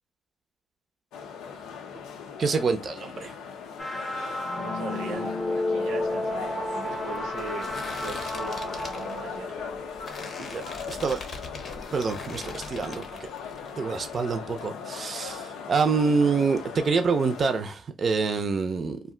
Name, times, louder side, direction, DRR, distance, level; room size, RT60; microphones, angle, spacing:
sound 1, 1.1-17.6, left 6 dB, 85° left, 0.5 m, -39 dB
voice 1, 2.4-3.3 10.4-11.2 11.9-13.0 13.8-19.0, right 4 dB, 45° right, 0.5 m, -26 dB
sound 2, 3.8-10.6, left 2 dB, 10° left, 0.7 m, -32 dB
voice 2, 4.5-9.5, right 4 dB, 85° right, 0.8 m, -39 dB
sound 3, 6.0-13.7 14.0-14.6, left 3 dB, 50° left, 0.7 m, -42 dB
2.5 x 2.2 x 3.6 m
cardioid pair, 90°, 0 cm